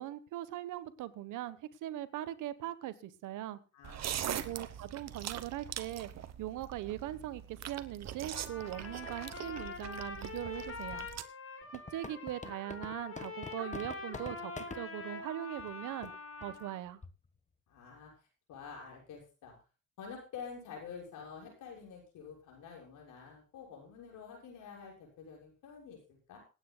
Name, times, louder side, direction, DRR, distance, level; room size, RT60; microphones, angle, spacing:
voice 1, 0.0-3.6 4.2-6.1 6.4-11.1 11.7-16.1 16.4-17.0, right 13 dB, 85° right, 14 dB, 1.2 m, -40 dB
voice 2, 3.7-4.7 17.7-19.5 20.0-26.4, left 6 dB, 85° left, -1 dB, 6.7 m, -49 dB
sound 1, 3.8-11.2, right 10 dB, 60° right, 1.1 m, -42 dB
Trumpet, 8.3-16.8, left 4 dB, 50° left, 6.6 m, -45 dB
sound 2, 11.6-14.8 15.6-15.7 16.0-16.1 16.4-16.6 17.0-17.3, left 4 dB, 25° left, 1.3 m, -45 dB
27.5 x 9.4 x 2.3 m, 0.32 s
cardioid pair, 90°, 30 cm